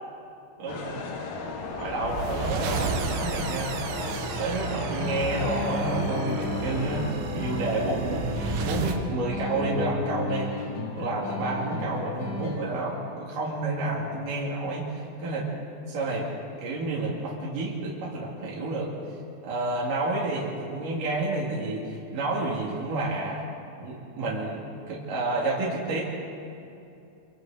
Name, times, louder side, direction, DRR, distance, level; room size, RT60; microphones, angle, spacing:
voice 1, 0.6-1.1 1.8-3.8 4.4-8.3 8.6-10.6 10.9-14.9 15.2-15.5 15.9-16.3 16.6-18.9 19.4-23.4 23.8-26.0, right 2 dB, 50° right, -5 dB, 3.4 m, -30 dB
sound 1, 0.7-7.1, left 4 dB, 85° left, 4.6 m, -35 dB
sound 2, 1.6-9.0, right 5 dB, 70° right, 2.8 m, -33 dB
sound 3, 5.0-13.0, left 3 dB, 55° left, 4.0 m, -34 dB
26.5 x 25.5 x 4.0 m, 2.7 s
omnidirectional pair, 5.9 m